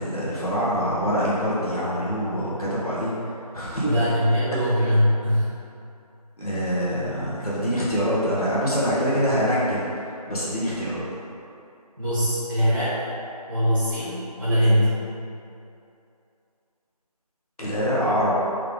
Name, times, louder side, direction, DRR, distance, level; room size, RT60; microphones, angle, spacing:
voice 1, 0.0-3.1 3.5-4.0 6.4-11.0 17.6-18.4, equal, 65° left, -8 dB, 1.3 m, -25 dB
voice 2, 3.8-5.5 12.0-13.0 13.5-14.9, equal, 30° right, -14 dB, 0.8 m, -21 dB
3.7 x 3.3 x 3.5 m, 2.6 s
figure-of-eight pair, 180°, 21 cm